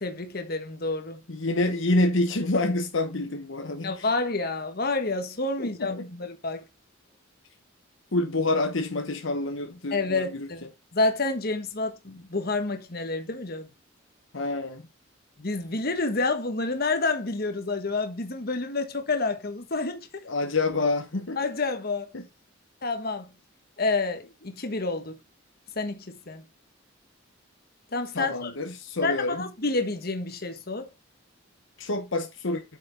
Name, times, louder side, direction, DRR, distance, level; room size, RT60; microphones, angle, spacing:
voice 1, 0.0-1.2 3.8-6.6 9.9-13.7 15.4-20.1 21.4-22.1 22.8-23.3 23.8-25.1 25.7-26.4 27.9-28.5 29.0-30.9, left 3 dB, 50° left, 1.4 m, -29 dB
voice 2, 1.3-4.1 5.6-6.1 8.1-10.5 14.3-14.8 20.2-21.4 22.1-22.2 28.1-29.5 31.8-32.6, left 2 dB, 70° left, 1.1 m, -27 dB
8.2 x 6.3 x 3.5 m
head